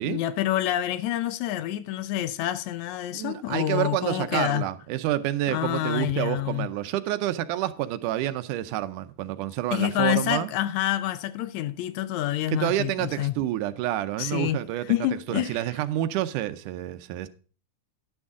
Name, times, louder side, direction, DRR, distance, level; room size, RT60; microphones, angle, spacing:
voice 1, 0.0-4.7 5.5-6.7 9.7-13.4 14.2-14.6 14.9-15.6, left 13 dB, 75° left, 1.8 m, -27 dB
voice 2, 3.1-10.5 12.5-17.3, right 13 dB, 85° right, 2.2 m, -28 dB
10.5 x 9.7 x 3.7 m
omnidirectional pair, 3.6 m